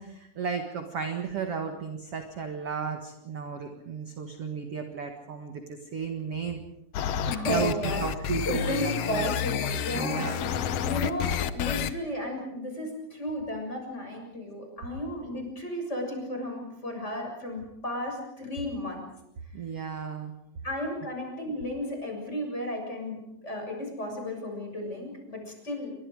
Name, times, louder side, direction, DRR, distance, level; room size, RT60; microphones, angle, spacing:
voice 1, 0.0-6.6 7.5-9.3 9.9-10.7 11.3-11.4 19.5-20.3, right 5 dB, 50° right, 4 dB, 2.2 m, -34 dB
sound 1, 6.9-11.9, left 9 dB, 85° left, 1.4 m, -30 dB
voice 2, 7.3-8.1 8.4-10.4 10.8-19.0 20.6-25.9, left 1 dB, 15° left, 2 dB, 7.1 m, -33 dB
29.5 x 24.5 x 4.9 m, 0.83 s
omnidirectional pair, 4.3 m